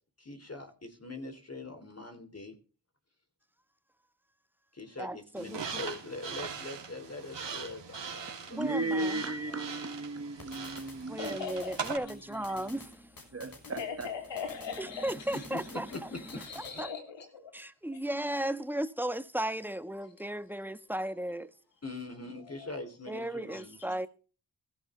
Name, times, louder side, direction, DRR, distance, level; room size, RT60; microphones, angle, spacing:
voice 1, 0.2-2.5 4.7-9.1 9.5-9.6 15.3-16.4 16.7-16.8 21.8-23.8, left 2 dB, 35° left, 3.4 m, -43 dB
voice 2, 5.0-5.6 8.6-9.2 11.1-13.1 14.8-16.1 16.5-16.9 17.5-21.5 23.1-24.1, right 1 dB, 5° right, 1.3 m, -35 dB
sound 1, 5.4-12.0, right 6 dB, 80° right, 3.1 m, -41 dB
voice 3, 8.5-11.4 13.3-14.1, right 2 dB, 35° right, 1.8 m, -35 dB
sound 2, 10.4-16.8, left 3 dB, 55° left, 6.5 m, -53 dB
voice 4, 11.2-11.8 13.8-15.5 16.3-17.5 17.9-18.0 22.5-22.8 23.5-23.9, left 6 dB, 90° left, 3.3 m, -40 dB
16.0 x 13.5 x 3.3 m
cardioid pair, 40°, 43 cm